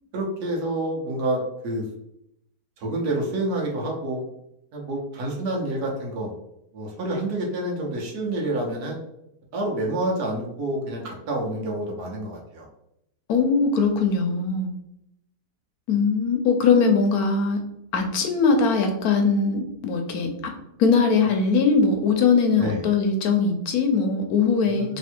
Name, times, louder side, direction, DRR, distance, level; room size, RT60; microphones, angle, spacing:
voice 1, 0.1-1.9 2.8-4.2 4.7-6.3 6.7-9.0 9.5-12.7 22.6-22.8 24.6-25.0, right 1 dB, 70° right, -1 dB, 1.4 m, -28 dB
voice 2, 13.3-14.7 15.9-17.6 17.9-20.3 20.8-25.0, left 5 dB, 70° left, 4 dB, 1.1 m, -21 dB
3.3 x 2.8 x 4.3 m, 0.80 s
omnidirectional pair, 1.8 m